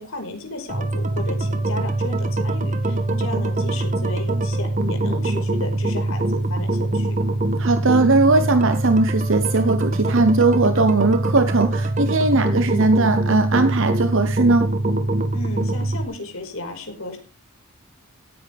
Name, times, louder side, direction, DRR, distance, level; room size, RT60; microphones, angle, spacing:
voice 1, 0.0-7.2 15.3-17.2, left 2 dB, 65° left, 5.2 m, -34 dB
sound 1, 0.7-16.0, right 2 dB, 35° right, 1.3 m, -23 dB
voice 2, 7.6-14.7, right 3 dB, 60° right, 1.0 m, -19 dB
17.0 x 10.5 x 3.6 m
head